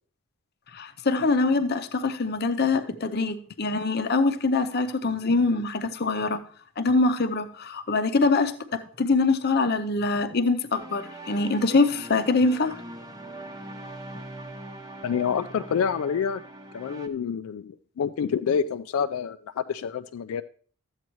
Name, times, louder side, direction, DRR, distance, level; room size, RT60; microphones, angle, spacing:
voice 1, 0.7-6.4 6.8-12.8, left 3 dB, 50° left, 0.6 m, -24 dB
sound 1, 10.7-17.1, right 1 dB, 15° right, 0.8 m, -41 dB
voice 2, 15.0-16.4 16.7-20.4, left 7 dB, 80° left, 0.3 m, -27 dB
12.5 x 8.1 x 3.0 m
head